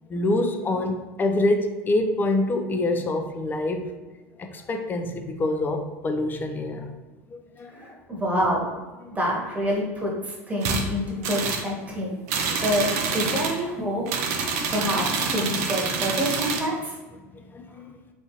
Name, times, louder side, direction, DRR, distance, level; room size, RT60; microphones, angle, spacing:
voice 1, 0.1-3.9 4.4-6.9 7.3-8.0 12.5-12.6 13.8-14.1 14.5-14.7 17.3-17.9, left 2 dB, 25° left, 6 dB, 0.4 m, -26 dB
voice 2, 7.7-8.7 9.1-12.2 12.6-14.0 14.7-17.0, equal, 15° right, -3 dB, 1.3 m, -27 dB
sound 1, 10.6-10.8 11.2-11.7 12.3-13.6 14.1-16.7, right 5 dB, 70° right, 0.5 m, -27 dB
3.5 x 2.6 x 2.9 m, 1.2 s
hypercardioid pair, 95°, 8 cm